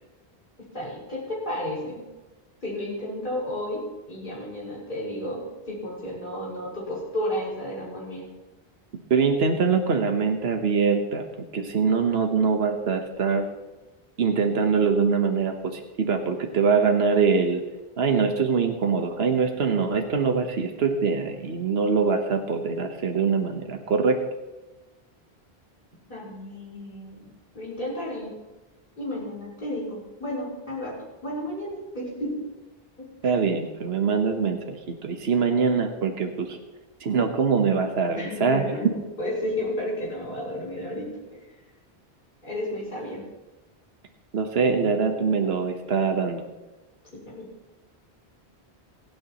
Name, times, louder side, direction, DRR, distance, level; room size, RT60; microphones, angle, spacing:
voice 1, 0.7-2.0 2.6-8.3 26.1-27.3 27.5-28.3 29.0-30.9 31.2-32.4 33.0-33.3 38.1-41.1 42.4-43.2 47.1-47.5, left 1 dB, 50° left, -6 dB, 5.9 m, -32 dB
voice 2, 9.1-11.2 11.5-13.4 14.2-17.6 18.0-24.2 33.2-36.6 37.0-38.6 44.3-46.4, right 5 dB, 75° right, 5 dB, 1.4 m, -23 dB
28.0 x 9.4 x 3.0 m, 1.1 s
omnidirectional pair, 1.1 m